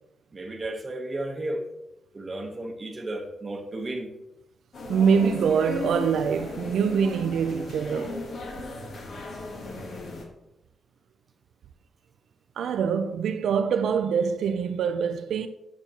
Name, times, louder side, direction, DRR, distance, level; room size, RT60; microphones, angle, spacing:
voice 1, 0.3-1.6 2.1-4.1, right 1 dB, 25° right, 0.9 m, -33 dB
sound 1, 4.7-10.2, left 3 dB, 55° left, 1.3 m, -36 dB
voice 2, 4.9-8.2 12.6-15.5, right 6 dB, 85° right, 0.4 m, -24 dB
8.9 x 6.0 x 2.9 m
wide cardioid pair, 135°, 0 cm